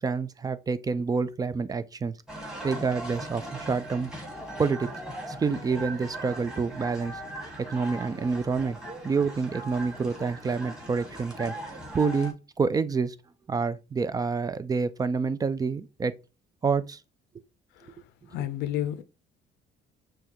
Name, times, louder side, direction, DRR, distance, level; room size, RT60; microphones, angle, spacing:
voice 1, 0.0-2.1 2.6-4.1 4.6-4.9 5.3-7.2 7.7-8.8 9.0-13.1 13.5-16.1 16.6-17.0, right 4 dB, 20° right, 0.4 m, -28 dB
sound 1, 2.3-12.3, right 1 dB, 5° right, 1.6 m, -39 dB
voice 2, 18.3-19.0, left 11 dB, 90° left, 0.5 m, -31 dB
6.0 x 2.3 x 2.8 m
cardioid pair, 110°, 17 cm